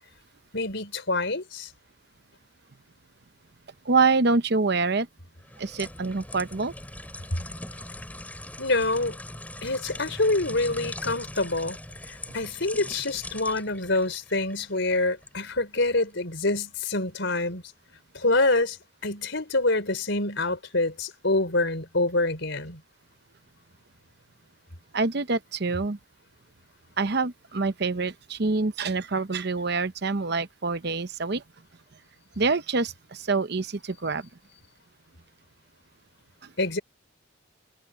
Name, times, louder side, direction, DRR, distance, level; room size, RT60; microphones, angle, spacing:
voice 1, 0.5-1.7 8.6-9.2 9.6-11.8 12.1-17.6 18.1-18.8 19.0-22.8 36.6-36.8, left 2 dB, 65° left, 4.4 m, -26 dB
voice 2, 3.9-5.1 5.6-6.7 24.9-26.0 27.0-31.4 32.4-34.2, right 4 dB, 55° right, 0.8 m, -26 dB
sound 1, 5.4-15.4 15.8-16.0, left 1 dB, 10° left, 4.4 m, -41 dB
head